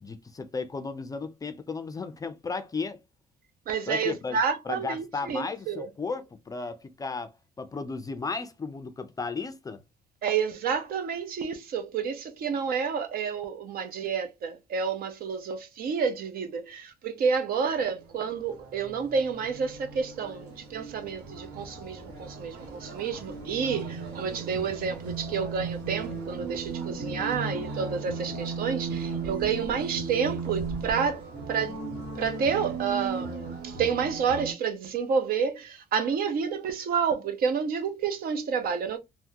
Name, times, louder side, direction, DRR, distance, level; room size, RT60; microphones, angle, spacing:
voice 1, 0.0-3.0 3.9-4.4 4.6-7.3 7.6-9.8, left 4 dB, 20° left, 0.4 m, -34 dB
voice 2, 3.7-5.9 10.2-31.2 31.5-31.8 32.1-39.0, right 6 dB, 60° right, 0.7 m, -29 dB
sound 1, 17.7-34.5, right 4 dB, 80° right, 1.3 m, -36 dB
3.4 x 2.1 x 2.7 m
cardioid pair, 110°, 17 cm